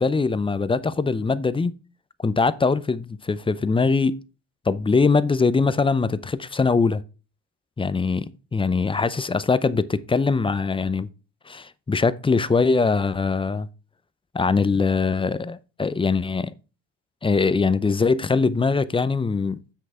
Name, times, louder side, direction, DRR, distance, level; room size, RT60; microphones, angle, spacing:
voice 1, 0.0-1.7 2.2-4.2 4.7-7.0 7.8-11.1 11.5-13.7 14.3-16.5 17.2-19.6, left 4 dB, 15° left, 0.5 m, -22 dB
7.7 x 6.4 x 4.3 m
supercardioid pair, 90°, 37 cm